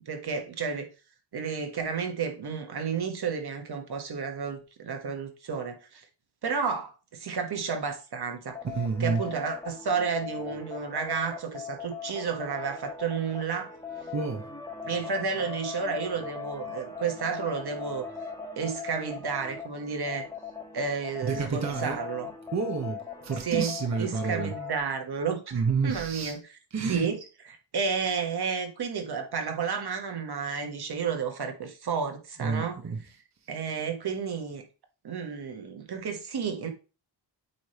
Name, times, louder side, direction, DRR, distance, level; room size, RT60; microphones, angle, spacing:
voice 1, 0.1-0.9 1.3-6.0 6.4-8.6 9.0-13.7 14.8-18.1 18.6-20.3 20.7-22.3 23.4-26.4 26.9-27.2 27.7-32.8 33.5-34.6 35.0-36.7, right 6 dB, 60° right, 1.4 m, -31 dB
sound 1, 8.5-24.8, left 5 dB, 5° left, 1.4 m, -40 dB
voice 2, 8.7-9.2 14.1-14.5 21.2-22.0 22.5-24.5 25.5-26.3 26.7-27.1 32.4-33.0, right 5 dB, 40° right, 1.1 m, -29 dB
8.6 x 3.4 x 4.3 m
wide cardioid pair, 130°, 44 cm